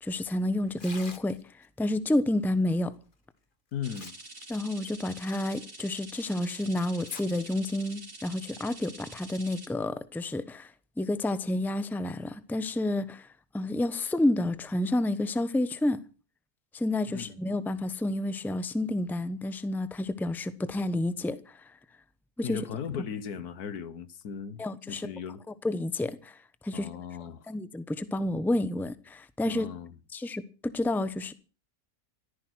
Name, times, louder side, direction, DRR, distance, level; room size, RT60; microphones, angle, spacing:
voice 1, 0.0-1.4 1.8-2.9 4.5-10.7 11.0-13.3 13.5-16.0 16.7-21.6 22.4-22.6 24.6-25.1 25.6-26.4 26.6-26.9 27.5-29.7 30.1-31.3, left 1 dB, ahead, 0.8 m, -30 dB
Tearing, 0.7-1.7 3.1-3.2 3.7-4.4 4.8-4.9 5.6-5.7 6.9-7.2 7.6-7.7 8.6-8.8, left 4 dB, 35° left, 1.6 m, -47 dB
voice 2, 3.7-4.1 17.1-17.4 22.4-25.4 26.7-27.5 29.5-30.0, left 7 dB, 80° left, 1.7 m, -37 dB
sound 1, 3.8-9.7, right 2 dB, 90° right, 4.3 m, -46 dB
14.5 x 14.0 x 6.3 m
omnidirectional pair, 1.6 m